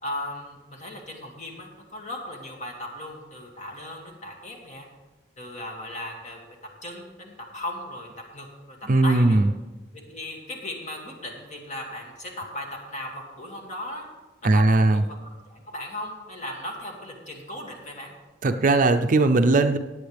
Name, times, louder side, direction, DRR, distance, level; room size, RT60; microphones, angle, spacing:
voice 1, 0.0-4.9 5.4-6.4 6.8-8.8 9.0-9.4 9.9-14.0 14.5-15.0 15.5-18.1, left 1 dB, 40° left, 0 dB, 2.3 m, -37 dB
voice 2, 8.9-9.4 14.4-15.0 18.4-19.8, right 2 dB, 45° right, 8 dB, 0.5 m, -19 dB
18.0 x 8.7 x 3.4 m, 1.2 s
head